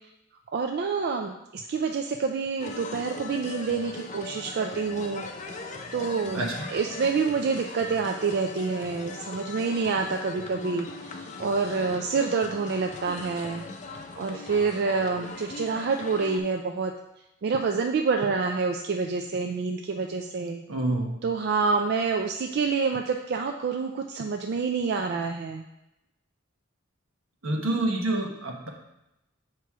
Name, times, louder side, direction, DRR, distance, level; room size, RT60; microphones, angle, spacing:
voice 1, 0.5-5.2 5.9-6.4 6.7-13.6 14.2-16.9 17.4-20.6 21.2-25.6, right 4 dB, 50° right, 4 dB, 0.3 m, -27 dB
sound 1, 2.6-16.4, left 3 dB, 35° left, 0.5 m, -40 dB
voice 2, 6.3-6.7 20.7-21.2 27.4-28.7, right 2 dB, 80° right, 1 dB, 1.1 m, -27 dB
7.3 x 3.0 x 4.6 m, 0.89 s
head